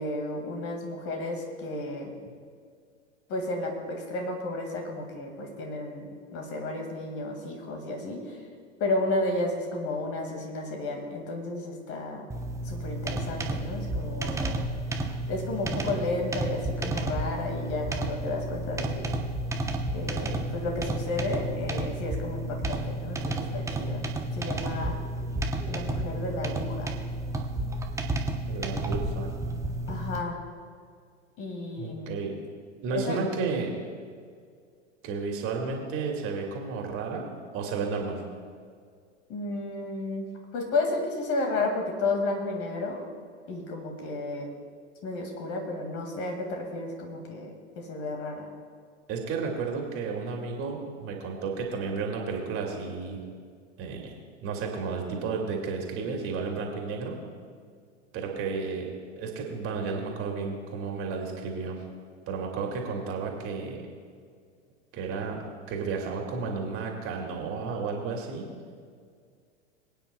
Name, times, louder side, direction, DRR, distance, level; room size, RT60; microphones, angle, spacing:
voice 1, 0.0-2.2 3.3-8.4 8.8-12.3 12.6-14.6 15.3-19.1 19.9-24.0 24.3-24.9 25.6-27.0 29.9-30.4 31.4-32.2 32.9-33.2 39.3-43.0 43.5-44.5 45.0-48.5, left 2 dB, 40° left, 2 dB, 2.2 m, -32 dB
sound 1, 12.3-30.2, right 1 dB, 10° right, 0.9 m, -31 dB
voice 2, 28.5-29.3 31.8-32.3 32.8-33.8 35.0-37.3 37.5-38.2 49.1-53.2 53.8-54.1 54.4-57.2 58.1-61.8 62.3-63.8 64.9-68.5, right 4 dB, 40° right, 0 dB, 2.5 m, -32 dB
23.0 x 9.2 x 2.3 m, 2.1 s
figure-of-eight pair, 85°, 35 cm